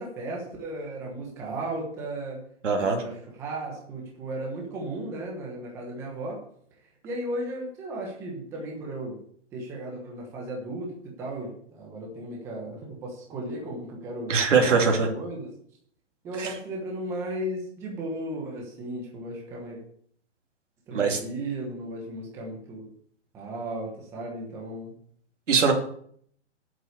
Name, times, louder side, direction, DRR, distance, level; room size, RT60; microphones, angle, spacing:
voice 1, 0.0-2.4 2.7-6.4 7.0-9.2 9.5-10.9 11.2-15.5 16.2-19.8 20.9-22.9 23.3-24.9, right 1 dB, 5° right, -1 dB, 1.1 m, -35 dB
voice 2, 2.6-3.0 14.3-15.1 16.4-16.5 20.9-21.2 25.5-25.7, right 5 dB, 90° right, 2 dB, 2.8 m, -21 dB
8.1 x 7.9 x 6.7 m, 0.63 s
hypercardioid pair, 175°, 36 cm